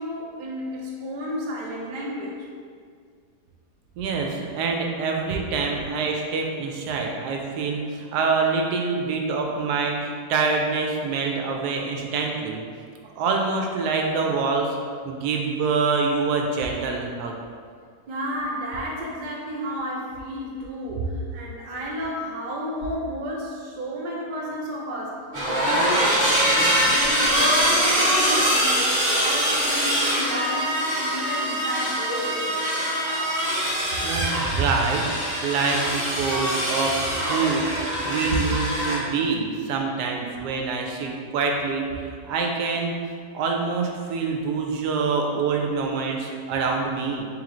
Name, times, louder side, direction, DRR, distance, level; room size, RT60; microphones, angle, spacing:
voice 1, 0.0-2.5 18.1-32.7, equal, 65° right, -3 dB, 0.4 m, -32 dB
voice 2, 4.0-12.6 13.2-14.8 15.1-17.4 34.0-35.1 35.4-37.0 37.3-37.6 38.0-43.0 43.3-47.3, right 4 dB, 80° right, 1 dB, 1.1 m, -25 dB
sound 1, 25.3-38.9, equal, 40° right, 1.3 m, -23 dB
3.5 x 3.1 x 3.7 m, 2.1 s
omnidirectional pair, 1.7 m